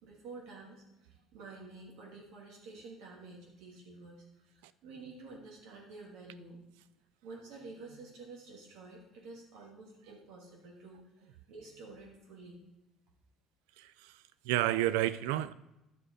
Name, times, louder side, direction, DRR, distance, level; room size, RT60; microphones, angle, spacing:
voice 1, 0.0-6.6 7.2-12.6, right 3 dB, 75° right, -1 dB, 3.2 m, -50 dB
voice 2, 13.8-15.5, right 14 dB, 90° right, 16 dB, 0.4 m, -31 dB
11.5 x 6.1 x 4.9 m, 0.92 s
supercardioid pair, 95°, 0 cm